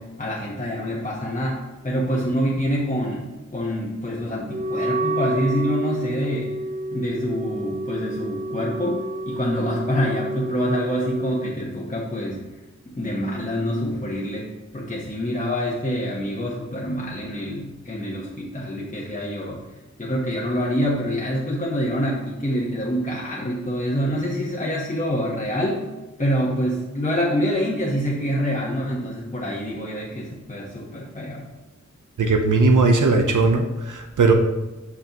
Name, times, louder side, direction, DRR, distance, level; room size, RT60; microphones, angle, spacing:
voice 1, 0.0-6.5 6.9-12.4 12.9-19.6 20.0-25.8 26.2-31.5, equal, 25° left, -5 dB, 1.1 m, -26 dB
Wind instrument woodwind instrument, 4.5-11.5, right 1 dB, 25° right, 0.5 m, -29 dB
voice 2, 32.2-34.3, right 3 dB, 90° right, 4 dB, 0.7 m, -18 dB
8.0 x 5.4 x 2.9 m, 1.1 s
wide cardioid pair, 75°, 30 cm